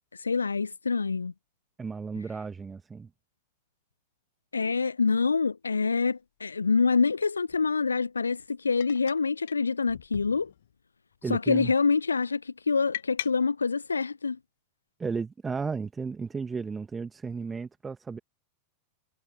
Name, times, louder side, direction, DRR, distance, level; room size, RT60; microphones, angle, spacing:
voice 1, 0.2-1.3 4.5-10.5 11.3-14.4, left 4 dB, 75° left, 0.6 m, -26 dB
voice 2, 1.8-3.1 11.2-11.7 15.0-18.2, right 5 dB, 15° right, 2.0 m, -34 dB
sound 1, 5.8-5.9 7.5-7.7 8.8-9.2 9.5-9.6 9.9-10.8 11.1-11.5 12.9-13.3, left 12 dB, 60° left, 1.6 m, -39 dB
figure-of-eight pair, 90°, 0 cm